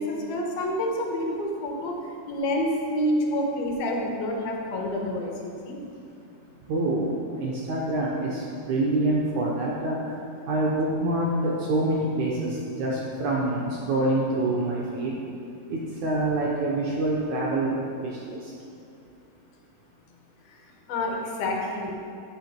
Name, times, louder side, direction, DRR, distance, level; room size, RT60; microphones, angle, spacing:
voice 1, 0.0-5.8 20.9-21.9, left 1 dB, 70° left, 0 dB, 3.0 m, -28 dB
voice 2, 6.7-10.0 10.5-15.2 15.7-18.5, right 2 dB, 70° right, -4 dB, 1.9 m, -26 dB
15.5 x 6.2 x 4.4 m, 2.5 s
omnidirectional pair, 4.6 m